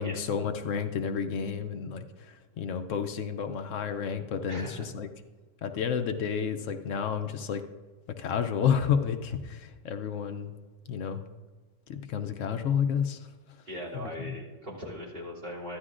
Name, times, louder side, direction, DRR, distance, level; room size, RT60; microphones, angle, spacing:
voice 1, 0.0-5.1 5.6-7.6 8.2-10.5 10.9-11.2 11.9-13.3 13.9-14.4, left 7 dB, 80° left, 7 dB, 1.0 m, -30 dB
voice 2, 4.5-4.9 13.7-15.8, equal, 45° right, -4 dB, 3.0 m, -39 dB
14.5 x 11.0 x 2.5 m, 1.3 s
omnidirectional pair, 1.3 m